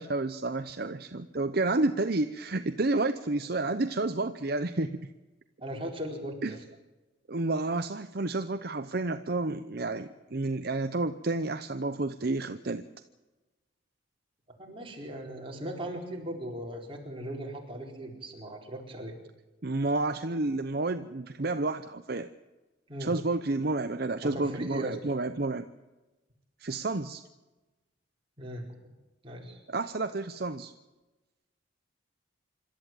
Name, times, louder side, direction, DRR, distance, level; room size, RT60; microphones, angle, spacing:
voice 1, 0.0-5.0 6.4-6.6 7.3-12.8 19.6-22.3 23.0-25.7 26.6-27.2 29.7-30.7, right 2 dB, 50° right, 9 dB, 0.8 m, -30 dB
voice 2, 5.6-6.6 14.6-19.1 22.9-23.1 24.2-25.0 28.4-28.6 29.2-29.6, right 1 dB, 25° right, 0 dB, 4.4 m, -38 dB
26.5 x 13.0 x 9.0 m, 1.1 s
head